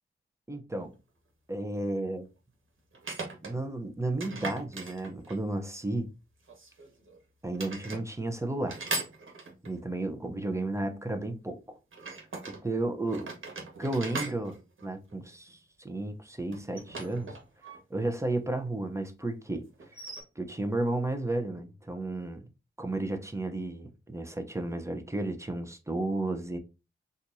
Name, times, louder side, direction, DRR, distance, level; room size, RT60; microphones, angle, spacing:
voice 1, 0.5-0.9 1.5-2.3 3.4-6.1 7.4-8.8 9.6-11.6 12.5-13.3 13.8-14.6 14.8-17.3 17.9-19.7 20.4-22.4 22.8-26.6, right 2 dB, 15° right, 0.8 m, -33 dB
sound 1, 0.8-0.9 2.9-3.6 4.2-5.5 6.5-7.2 7.5-8.0 8.7-9.8 11.9-12.6 13.1-15.5 16.5-17.8 18.0-18.1 19.8-20.2, right 3 dB, 70° right, 1.4 m, -39 dB
4.4 x 2.6 x 2.7 m
cardioid pair, 50°, 21 cm